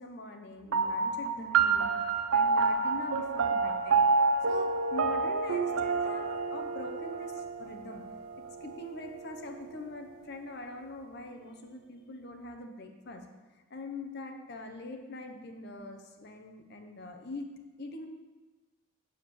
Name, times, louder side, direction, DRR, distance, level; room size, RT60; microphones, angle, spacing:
voice 1, 0.0-4.0 4.5-8.0 8.4-13.2 13.7-17.5 17.8-18.1, left 2 dB, 50° left, 4 dB, 0.8 m, -43 dB
sound 1, 0.7-9.5, right 4 dB, 80° right, 0.6 m, -29 dB
7.0 x 4.9 x 6.2 m, 1.2 s
head